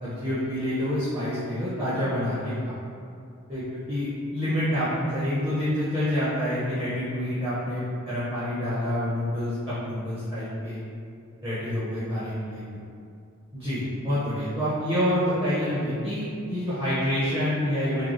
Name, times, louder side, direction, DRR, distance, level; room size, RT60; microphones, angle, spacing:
voice 1, 0.0-2.7 3.5-3.6 3.9-10.8 11.4-12.6 13.5-18.1, equal, 10° right, -13 dB, 0.9 m, -27 dB
3.2 x 2.3 x 3.9 m, 2.4 s
head